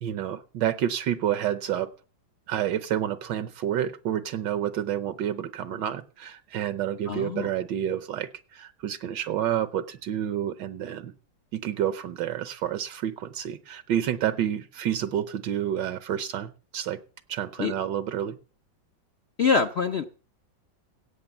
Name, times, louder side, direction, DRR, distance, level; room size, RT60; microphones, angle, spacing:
voice 1, 0.0-1.9 2.5-11.1 11.5-17.0 17.3-18.4, right 10 dB, 75° right, 12 dB, 1.4 m, -29 dB
voice 2, 7.1-7.5 17.6-17.7 19.4-20.0, left 5 dB, 65° left, 7 dB, 0.6 m, -24 dB
17.0 x 6.0 x 7.1 m, 0.39 s
omnidirectional pair, 2.0 m